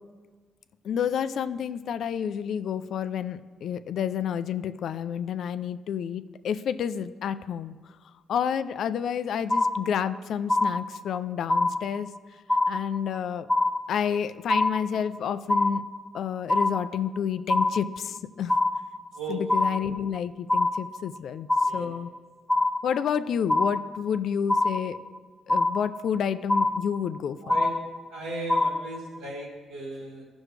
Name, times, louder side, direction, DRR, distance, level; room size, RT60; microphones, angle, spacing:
voice 1, 0.8-7.7 8.3-12.1 12.7-13.5 13.9-15.8 16.1-18.6 19.3-22.1 22.8-25.0 25.5-27.6, left 8 dB, 70° left, 12 dB, 0.4 m, -29 dB
sound 1, 9.5-10.2 10.5-11.2 11.5-12.2 12.5-13.2 13.5-14.2 14.5-15.2 15.5-16.2 16.5-17.2 17.5-18.2 18.5-19.2 19.5-20.2 20.5-21.2 21.5-22.2 22.5-23.2 23.5-24.2 24.5-25.2 25.5-26.2 26.5-27.2 27.5-28.2 28.5-29.2, left 2 dB, 10° left, 0.5 m, -25 dB
voice 2, 28.1-30.2, right 2 dB, 90° right, -3 dB, 2.9 m, -36 dB
15.0 x 6.2 x 3.3 m, 1.4 s
cardioid pair, 90°, 0 cm